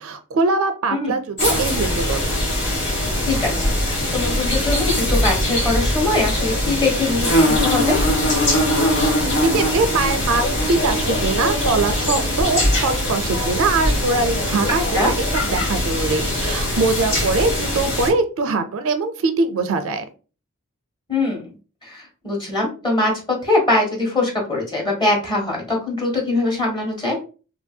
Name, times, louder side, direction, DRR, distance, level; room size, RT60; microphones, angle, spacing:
voice 1, 0.0-2.3 9.4-20.1, right 3 dB, 65° right, 8 dB, 0.4 m, -22 dB
sound 1, 1.4-18.1, left 1 dB, 55° left, 1.3 m, -21 dB
voice 2, 3.2-8.0 14.9-15.1 21.1-21.4 21.8-23.1 23.4-27.2, left 2 dB, 20° left, -1 dB, 1.1 m, -22 dB
3.0 x 2.6 x 2.2 m, 0.35 s
head